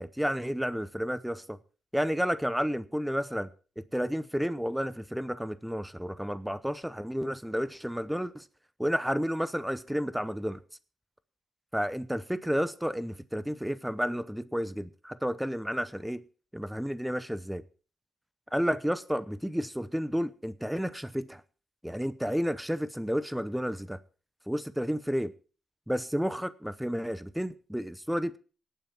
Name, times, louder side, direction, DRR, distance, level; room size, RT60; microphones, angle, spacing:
voice 1, 0.0-1.6 1.9-3.5 3.8-8.4 8.8-10.6 11.7-16.2 16.5-17.6 18.5-21.4 21.8-24.0 24.5-25.3 25.9-28.4, equal, 5° right, 0.7 m, -31 dB
17.5 x 9.2 x 4.5 m
cardioid pair, 90°, 0 cm